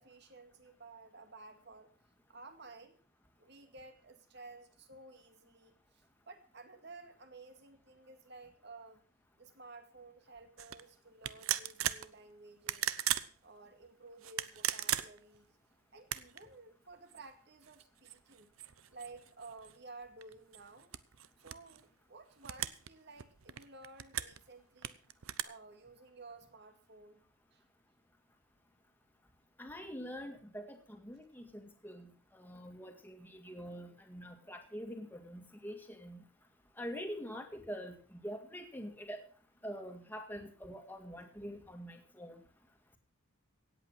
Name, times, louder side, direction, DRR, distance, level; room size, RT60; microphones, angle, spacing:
voice 1, 0.0-1.9 2.3-3.0 3.4-9.0 9.4-12.9 13.4-15.6 15.9-18.5 18.9-20.9 21.4-25.0 25.4-27.2 27.5-27.6, right 3 dB, 50° right, 7 dB, 2.1 m, -54 dB
sound 1, 10.6-10.8 11.2-12.1 12.6-13.3 14.2-15.4 16.0-16.4 17.1-17.2 17.6-19.8 20.2-21.8 22.4-22.9 23.2-24.4 24.8-25.4, right 12 dB, 75° right, 0.7 m, -37 dB
voice 2, 29.6-36.2 36.8-39.2 39.6-42.4, equal, 10° left, 4 dB, 2.0 m, -45 dB
17.0 x 8.3 x 6.1 m, 0.43 s
head